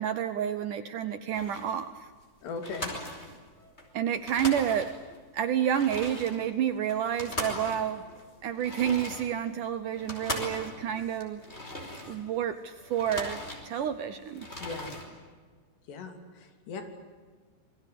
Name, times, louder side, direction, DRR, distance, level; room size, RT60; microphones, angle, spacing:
voice 1, 0.0-2.1 3.9-4.9 5.3-8.0 8.4-11.4 12.1-14.5, right 9 dB, 75° right, 11 dB, 1.9 m, -29 dB
sound 1, 1.3-1.8 2.2-2.3 2.6-3.9 4.1-5.2 5.6-12.4 12.8-14.0 14.3-15.1, left 1 dB, 15° left, 4.8 m, -39 dB
voice 2, 2.4-2.9 14.6-14.9 15.9-16.8, left 4 dB, 90° left, 6 dB, 5.3 m, -38 dB
28.0 x 22.0 x 8.5 m, 1.5 s
omnidirectional pair, 4.8 m